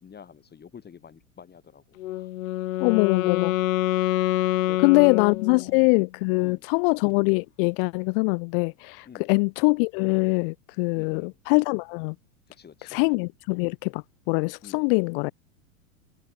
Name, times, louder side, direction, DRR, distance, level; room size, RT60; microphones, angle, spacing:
voice 1, 0.0-2.3 4.7-5.1 5.6-5.8 6.4-6.7 9.1-9.4 11.0-11.3 12.6-13.1 14.6-14.9, left 7 dB, 25° left, 5.2 m, -48 dB
Wind instrument woodwind instrument, 2.0-5.9, left 15 dB, 65° left, 3.7 m, -26 dB
voice 2, 2.8-3.6 4.8-12.1 12.8-15.3, left 34 dB, 45° left, 0.5 m, -23 dB
hypercardioid pair, 100°, 42 cm